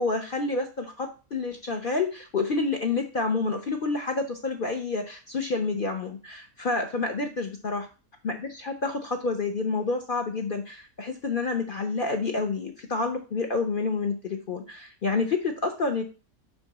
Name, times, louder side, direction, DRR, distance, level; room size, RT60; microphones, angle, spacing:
voice 1, 0.0-7.8 8.2-16.0, left 3 dB, 45° left, 3 dB, 0.8 m, -28 dB
5.5 x 5.2 x 4.0 m, 0.33 s
omnidirectional pair, 1.6 m